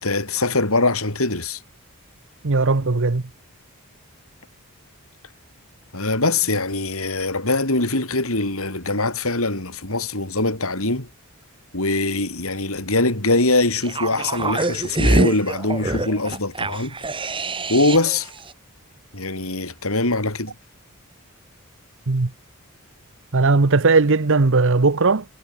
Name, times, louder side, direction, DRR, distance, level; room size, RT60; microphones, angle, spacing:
voice 1, 0.0-1.6 5.9-11.1 11.7-16.9 17.7-18.3 19.1-20.5, left 2 dB, 70° left, 5.6 m, -22 dB
voice 2, 2.4-3.2 22.1-22.3 23.3-25.2, right 3 dB, 60° right, 1.0 m, -17 dB
sound 1, 13.8-18.2 18.5-18.6, right 2 dB, 25° right, 2.3 m, -24 dB
head